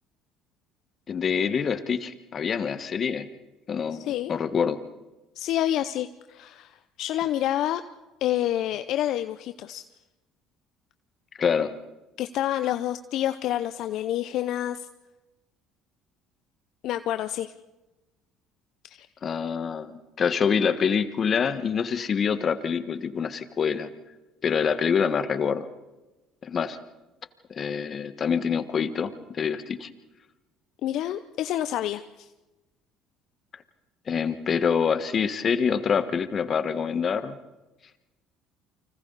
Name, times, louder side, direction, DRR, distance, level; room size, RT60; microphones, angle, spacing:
voice 1, 1.1-3.3 3.7-4.8 11.4-11.7 19.2-23.9 24.4-25.7 26.4-26.8 27.5-29.9 34.1-37.4, left 6 dB, 45° left, 11 dB, 1.5 m, -26 dB
voice 2, 3.9-4.3 5.4-7.8 8.2-9.8 12.2-14.9 16.8-17.5 18.9-19.1 30.8-32.3, left 12 dB, 65° left, 10 dB, 0.7 m, -28 dB
30.0 x 25.0 x 4.1 m, 1.1 s
supercardioid pair, 75°, 0 cm